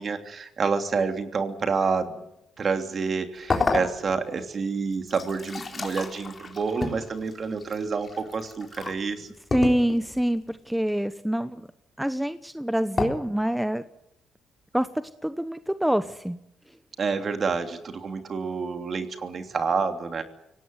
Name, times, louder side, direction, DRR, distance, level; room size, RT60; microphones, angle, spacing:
voice 1, 0.0-2.2 2.6-9.3 17.0-20.2, right 5 dB, 45° right, 7 dB, 3.0 m, -28 dB
sound 1, 3.5-4.4 4.9-9.0 9.5-10.2 13.0-13.1, left 4 dB, 30° left, 3.8 m, -30 dB
voice 2, 9.5-11.7 12.0-13.9 14.7-14.9 15.2-16.4, equal, 5° right, 11 dB, 1.0 m, -25 dB
24.5 x 18.0 x 9.6 m, 0.82 s
cardioid pair, 90°, 0 cm